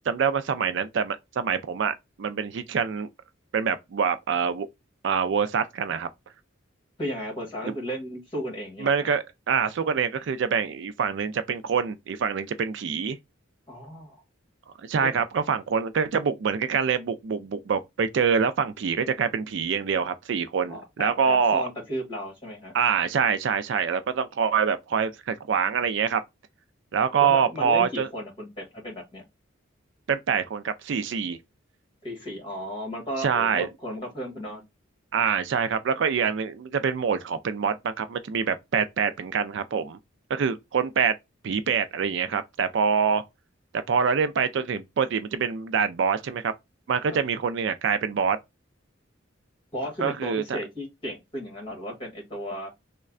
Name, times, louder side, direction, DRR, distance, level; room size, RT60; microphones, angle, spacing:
voice 1, 0.1-3.1 3.5-4.7 5.0-6.1 7.6-7.8 8.8-13.2 14.8-21.6 22.7-26.2 26.9-28.1 30.1-31.4 33.2-33.7 35.1-40.0 40.3-41.2 41.4-43.2 43.7-46.5 46.9-48.4 50.0-50.6, right 6 dB, 60° right, 0.4 m, -25 dB
voice 2, 7.0-8.9 13.7-14.1 15.0-15.1 20.7-22.7 27.2-29.2 32.0-34.6 47.1-47.2 49.7-52.7, equal, 25° left, 1.6 m, -34 dB
3.2 x 2.2 x 3.6 m
head